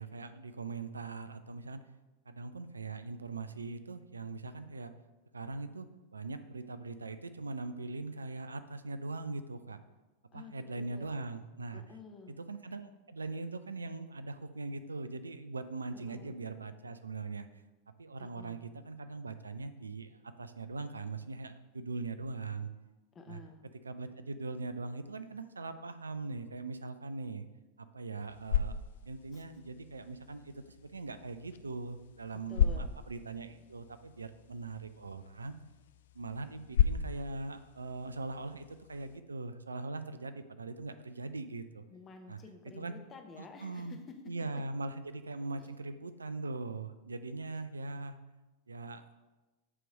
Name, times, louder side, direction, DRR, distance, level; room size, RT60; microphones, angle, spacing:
voice 1, 0.0-1.8 2.3-4.9 5.3-5.9 6.1-9.8 10.3-11.8 12.3-17.5 18.0-20.1 20.4-22.7 23.3-23.4 23.8-27.4 27.8-28.8 29.1-35.6 36.1-41.8 42.3-42.4 42.7-42.9 43.4-44.0 44.3-48.2 48.7-49.1, right 3 dB, 75° right, 11 dB, 0.3 m, -41 dB
voice 2, 10.3-11.1 11.7-12.3 16.1-16.4 18.2-18.6 23.1-23.6 29.3-29.4 32.5-32.9 41.9-44.0 45.6-45.7, left 4 dB, 25° left, 5 dB, 0.8 m, -51 dB
sound 1, 28.1-39.2, left 8 dB, 60° left, 0.3 m, -36 dB
7.7 x 3.0 x 5.1 m, 1.1 s
figure-of-eight pair, 90°, 0 cm